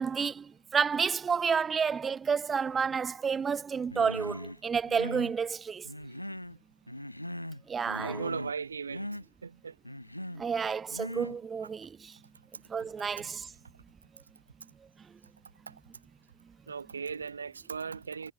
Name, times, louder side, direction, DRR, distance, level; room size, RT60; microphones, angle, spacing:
voice 1, 0.0-5.9 7.7-8.3 10.4-12.1 12.7-13.5, right 6 dB, 30° right, 0.7 m, -30 dB
Human voice, 3.9-4.6 4.9-5.4 5.8-6.6 6.9-7.6 7.9-8.6 8.9-9.2 9.8-10.4 10.9-11.4, left 1 dB, 90° left, 1.1 m, -39 dB
voice 2, 8.0-9.1 9.4-9.7 15.7-15.8 16.7-18.3, right 5 dB, 80° right, 0.7 m, -38 dB
figure-of-eight pair, 55°, 0 cm